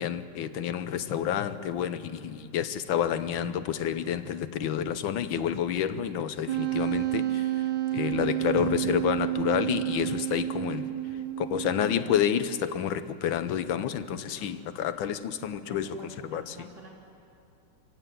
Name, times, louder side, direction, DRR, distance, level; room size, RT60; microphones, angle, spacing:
voice 1, 0.0-7.5 7.9-10.9 11.4-16.0 16.2-16.7, left 9 dB, 85° left, 12 dB, 1.7 m, -29 dB
Wind instrument woodwind instrument, 6.5-12.1, right 13 dB, 75° right, 1.5 m, -30 dB
voice 2, 14.1-14.7 15.6-16.9, right 1 dB, 50° right, -2 dB, 3.4 m, -50 dB
26.0 x 16.0 x 9.3 m, 2.7 s
omnidirectional pair, 2.1 m